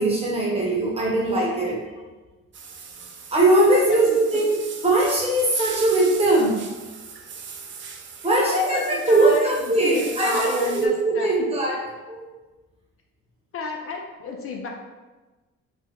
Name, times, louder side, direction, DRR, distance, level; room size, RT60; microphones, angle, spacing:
voice 1, 0.0-1.8 3.3-6.7 8.2-11.8 12.1-12.3, right 2 dB, 20° right, -4 dB, 1.0 m, -20 dB
sound 1, 2.5-10.9, right 6 dB, 40° right, 0.4 m, -39 dB
voice 2, 3.7-4.2 8.3-9.5 9.8-11.3 13.5-14.7, left 4 dB, 45° left, 1 dB, 0.4 m, -32 dB
3.3 x 2.0 x 3.6 m, 1.2 s
cardioid pair, 90°, 30 cm